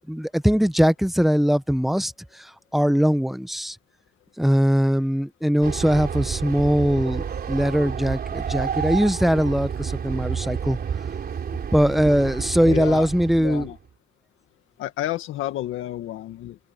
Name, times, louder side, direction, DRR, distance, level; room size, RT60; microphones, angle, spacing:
voice 1, 0.1-3.8 4.4-10.8 11.7-13.7, equal, ahead, 1.1 m, -21 dB
Train, 5.6-13.8, right 7 dB, 50° right, 3.6 m, -30 dB
voice 2, 12.6-13.1 13.4-13.8 14.8-16.6, left 14 dB, 85° left, 1.9 m, -30 dB
cardioid pair, 90°, 20 cm